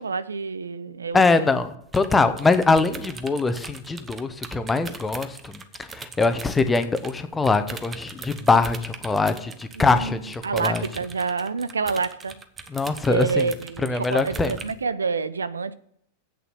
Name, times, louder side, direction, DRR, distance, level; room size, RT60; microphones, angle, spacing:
voice 1, 0.0-1.2 9.8-10.1 10.4-12.4 13.1-15.7, right 4 dB, 75° right, 0.5 m, -27 dB
voice 2, 1.1-10.8 12.7-13.5 13.8-14.6, left 3 dB, 10° left, 1.0 m, -23 dB
sound 1, 1.9-7.2 7.4-14.7, right 5 dB, 20° right, 1.0 m, -40 dB
8.5 x 7.0 x 7.7 m
figure-of-eight pair, 90°, 0 cm